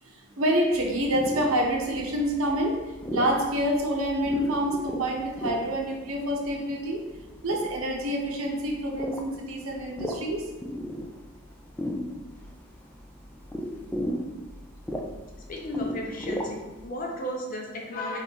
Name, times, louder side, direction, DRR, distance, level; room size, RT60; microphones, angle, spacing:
voice 1, 0.0-7.0 7.4-10.4, equal, 80° right, 0 dB, 0.9 m, -27 dB
sound 1, 0.7-16.9, equal, 10° left, 0.4 m, -36 dB
voice 2, 15.5-18.2, left 1 dB, 40° left, 0 dB, 0.8 m, -34 dB
3.6 x 3.3 x 4.3 m, 1.1 s
head